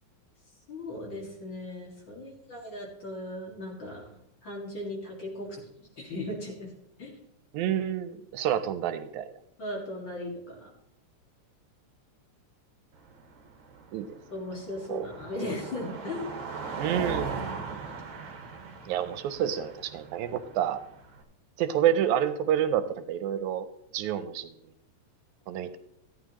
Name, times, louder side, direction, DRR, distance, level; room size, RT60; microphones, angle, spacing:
voice 1, 0.7-5.5 5.8-6.7 7.0-7.1 9.6-10.7 14.3-16.3, left 1 dB, 40° left, -2 dB, 2.5 m, -37 dB
voice 2, 7.5-9.3 13.9-14.1 14.9-15.1 16.8-17.8 18.9-20.8 21.6-23.7 23.9-24.5 25.5-25.8, right 10 dB, 80° right, 12 dB, 2.0 m, -28 dB
Car passing by, 12.9-21.2, right 5 dB, 50° right, 1.9 m, -39 dB
14.0 x 9.4 x 3.0 m, 0.76 s
omnidirectional pair, 3.4 m